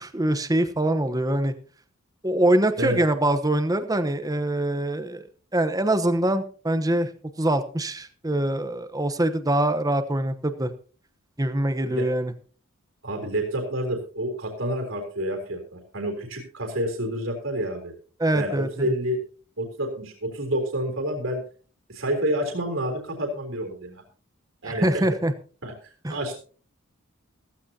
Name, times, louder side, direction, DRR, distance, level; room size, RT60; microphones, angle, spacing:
voice 1, 0.0-1.5 2.2-5.3 5.5-7.1 7.4-10.7 11.4-12.3 18.2-18.9 24.6-25.3 26.0-26.2, right 1 dB, 20° right, 10 dB, 1.0 m, -24 dB
voice 2, 13.0-17.9 18.3-19.2 19.6-21.4 21.9-24.0 24.6-25.1 25.6-25.7 26.1-26.4, right 1 dB, 65° right, 4 dB, 3.7 m, -28 dB
15.5 x 15.5 x 2.8 m, 0.40 s
head